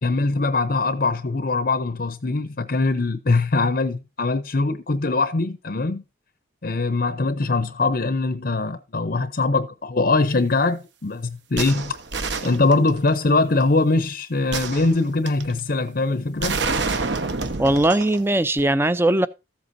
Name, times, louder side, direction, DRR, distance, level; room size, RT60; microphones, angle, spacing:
voice 1, 0.0-6.0 6.6-12.0 12.4-16.6, left 3 dB, 45° left, 0.7 m, -22 dB
sound 1, 11.6-13.1 14.5-15.5 16.4-18.2 18.6-18.7, right 4 dB, 60° right, 1.1 m, -27 dB
voice 2, 17.6-19.3, right 1 dB, 10° right, 0.5 m, -19 dB
14.5 x 8.0 x 2.7 m
head